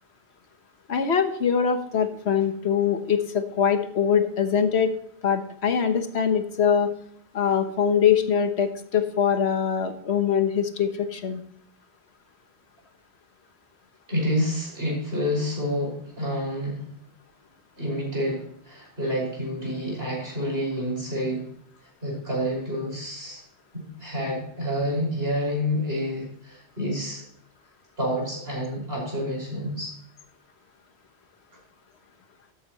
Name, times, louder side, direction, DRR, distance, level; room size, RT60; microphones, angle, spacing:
voice 1, 0.9-4.9 5.2-6.9 7.3-11.4, left 7 dB, 75° left, 8 dB, 1.4 m, -23 dB
voice 2, 14.1-16.9 17.8-21.5 22.0-23.4 23.7-27.2 28.0-29.9, equal, 65° right, -2 dB, 5.8 m, -28 dB
13.0 x 10.0 x 3.0 m, 0.66 s
omnidirectional pair, 1.1 m